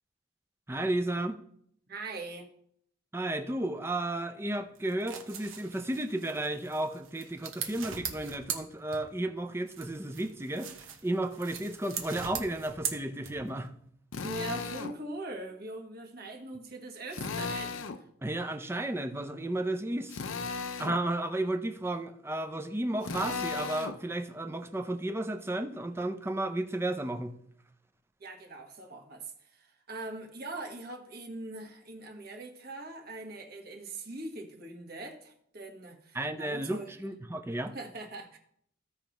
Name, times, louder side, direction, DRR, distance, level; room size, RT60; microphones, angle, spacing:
voice 1, 0.7-1.4 3.1-10.7 11.0-13.7 18.2-20.2 20.8-27.3 36.1-37.7, right 1 dB, 10° right, 7 dB, 0.5 m, -33 dB
voice 2, 1.9-2.5 14.2-18.0 28.2-36.9 37.7-38.4, right 2 dB, 50° right, 3 dB, 1.3 m, -42 dB
sound 1, 4.7-9.3 9.7-13.7, right 7 dB, 85° right, 1.1 m, -41 dB
Drill, 14.1-15.0 17.1-18.0 20.1-21.0 23.0-24.0, left 4 dB, 75° left, 0.6 m, -36 dB
15.0 x 5.1 x 3.0 m, 0.69 s
head